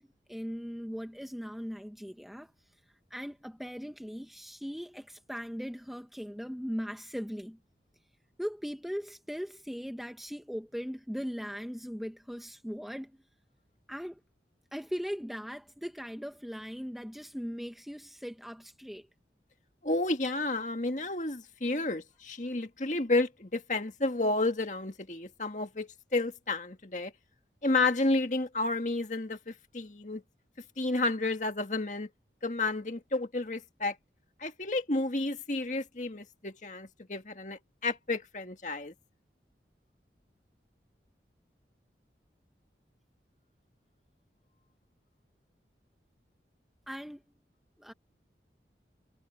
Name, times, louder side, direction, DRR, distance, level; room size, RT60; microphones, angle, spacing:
voice 1, 0.0-2.5 3.1-7.6 8.4-13.2 13.9-14.2 14.7-19.1 46.9-47.2 47.8-47.9, equal, ahead, 1.3 m, -39 dB
voice 2, 19.8-27.1 27.6-30.2 30.8-32.1 32.4-34.0 34.4-38.9, left 2 dB, 45° left, 1.8 m, -31 dB
head